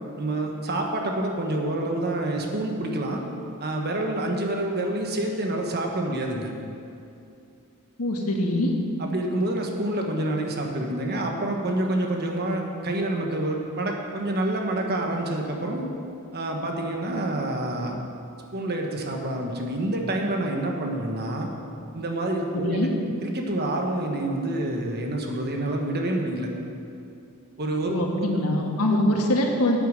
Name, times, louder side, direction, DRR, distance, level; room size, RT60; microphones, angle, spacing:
voice 1, 0.2-3.2 3.6-6.5 9.0-15.9 16.3-18.0 18.5-21.5 21.9-22.9 23.2-26.5 27.6-28.3 28.9-29.0, right 1 dB, 45° right, 2 dB, 1.4 m, -27 dB
voice 2, 8.0-8.7 22.5-22.9 27.9-29.8, left 1 dB, 90° left, 1 dB, 1.6 m, -23 dB
10.0 x 9.0 x 6.5 m, 2.6 s
head